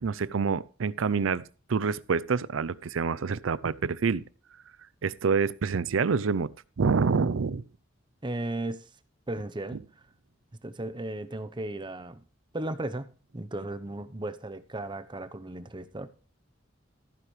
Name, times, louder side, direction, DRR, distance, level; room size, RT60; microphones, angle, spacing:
voice 1, 0.0-1.4 1.7-4.2 5.0-6.5 6.8-7.6, right 5 dB, 80° right, 0.5 m, -27 dB
voice 2, 8.2-8.8 9.3-9.8 10.6-12.2 12.5-13.1 13.3-16.1, right 2 dB, 25° right, 0.8 m, -35 dB
14.5 x 9.7 x 3.2 m
head